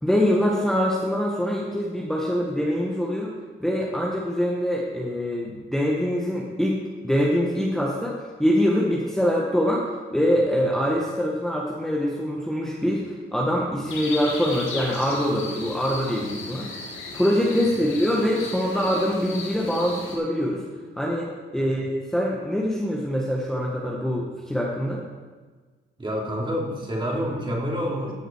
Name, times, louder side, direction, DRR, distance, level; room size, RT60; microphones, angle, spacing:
voice 1, 0.0-3.3 3.6-6.8 7.0-16.7 17.1-20.6 20.9-25.0, equal, ahead, -4 dB, 1.6 m, -24 dB
sound 1, 13.9-20.2, left 3 dB, 85° left, 2.4 m, -36 dB
voice 2, 26.0-28.1, equal, 25° right, -2 dB, 3.2 m, -28 dB
14.5 x 6.6 x 4.7 m, 1.4 s
cardioid pair, 90°, 20 cm